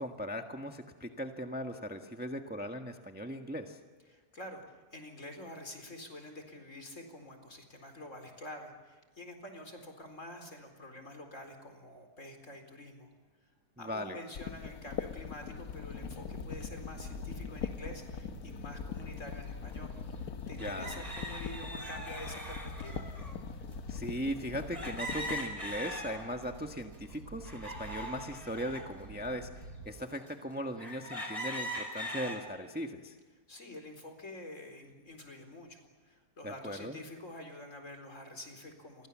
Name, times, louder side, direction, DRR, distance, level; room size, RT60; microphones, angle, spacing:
voice 1, 0.0-3.8 13.8-14.2 20.6-21.1 23.9-33.2 36.4-37.0, equal, 5° right, 4 dB, 1.4 m, -39 dB
voice 2, 4.1-13.1 13.8-19.9 20.5-23.1 33.5-39.1, left 1 dB, 50° left, 5 dB, 4.6 m, -47 dB
sound 1, 14.3-25.4, left 7 dB, 70° left, 1.5 m, -42 dB
sound 2, 15.4-29.9, right 2 dB, 75° right, 5.9 m, -48 dB
sound 3, 19.4-19.5 20.6-23.3 24.7-26.5 26.9-28.9 29.5-29.6 30.3-30.4 30.8-32.4, equal, 20° right, 4.7 m, -41 dB
30.0 x 24.5 x 7.5 m, 1.4 s
omnidirectional pair, 1.7 m